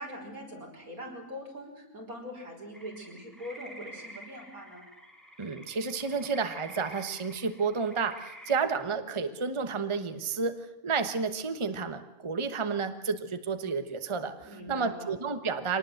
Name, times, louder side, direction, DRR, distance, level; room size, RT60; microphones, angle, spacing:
voice 1, 0.0-4.8 14.4-15.1, equal, 85° right, 0 dB, 6.0 m, -42 dB
sound 1, 2.7-8.6, equal, ahead, 2.9 m, -49 dB
voice 2, 5.4-15.8, right 5 dB, 25° right, 9 dB, 1.1 m, -31 dB
24.0 x 19.0 x 7.9 m, 0.90 s
omnidirectional pair, 1.5 m